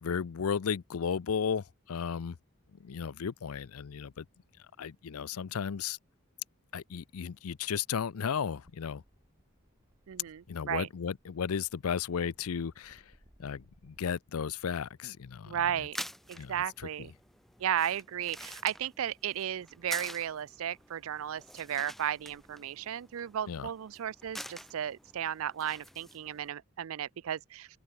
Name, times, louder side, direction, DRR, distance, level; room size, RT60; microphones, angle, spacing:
voice 1, 0.0-2.4 2.7-4.2 4.8-6.0 6.7-9.0 10.5-13.0 13.4-15.9 16.4-16.9 23.5-23.7, left 7 dB, 75° left, 0.5 m, -34 dB
sound 1, 8.1-14.2, equal, 15° right, 1.7 m, -65 dB
voice 2, 10.1-10.9 15.5-16.0 16.3-17.1 17.6-27.7, right 10 dB, 65° right, 0.4 m, -34 dB
sound 2, 12.4-12.8 14.8-16.8 17.6-17.8, right 1 dB, 80° right, 5.4 m, -75 dB
sound 3, 15.7-26.5, equal, ahead, 0.8 m, -48 dB
open air
head